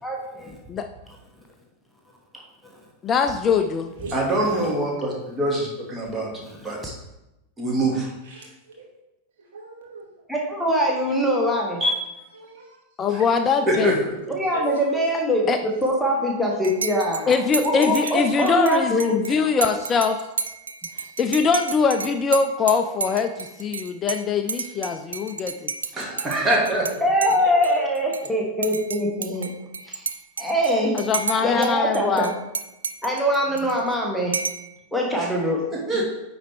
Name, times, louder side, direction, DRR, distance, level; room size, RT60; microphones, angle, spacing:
voice 1, 0.0-0.6 4.4-4.5 6.6-6.8 10.3-11.8 14.3-19.2 27.0-29.5 29.8-30.1 30.4-31.0 31.4-32.3 33.0-34.4 34.9-35.6, equal, ahead, -3 dB, 1.2 m, -23 dB
voice 2, 3.0-3.9 13.0-14.0 15.5-15.6 17.3-20.2 21.2-25.7 30.9-32.3, left 5 dB, 25° left, 7 dB, 0.4 m, -22 dB
voice 3, 4.1-6.9 7.6-8.1 11.8-12.0 13.1-13.2 13.7-14.1 25.9-26.9 35.2-35.3 35.7-36.0, right 1 dB, 15° right, -2 dB, 2.1 m, -24 dB
voice 4, 8.2-8.9 9.4-10.1 12.3-12.8 13.4-13.5 13.7-13.9 14.5-15.0 18.4-18.8 27.2-27.3 27.6-27.7 31.1-31.7 33.5-33.6, right 3 dB, 55° right, -2 dB, 2.1 m, -37 dB
Dishes pots and pans / Cutlery silverware / Chink clink, 16.6-26.9 27.2-28.3 28.6-31.7 31.9-33.9 34.3-34.7, right 5 dB, 75° right, 0.4 m, -32 dB
9.5 x 4.3 x 3.5 m, 0.94 s
figure-of-eight pair, 90°, 0 cm